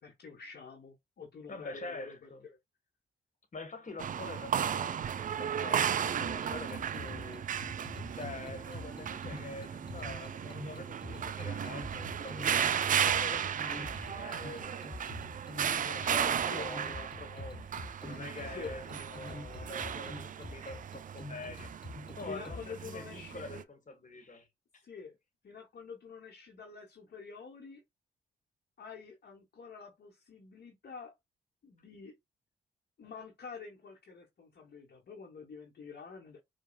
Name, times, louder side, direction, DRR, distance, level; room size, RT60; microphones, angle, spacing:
voice 1, 0.0-2.6 16.4-16.7 18.4-18.7 22.2-23.6 24.8-25.2 25.4-27.8 28.8-31.1 31.6-32.2 33.0-36.4, left 5 dB, 55° left, 1.0 m, -47 dB
voice 2, 1.5-2.4 3.5-7.8 8.1-14.9 15.7-21.7 22.1-24.5 24.7-24.8, left 3 dB, 40° left, 1.4 m, -45 dB
sound 1, 4.0-23.6, right 8 dB, 45° right, 0.4 m, -35 dB
sound 2, 6.2-22.6, left 2 dB, 25° left, 1.4 m, -46 dB
4.8 x 2.2 x 2.2 m
supercardioid pair, 45°, 19 cm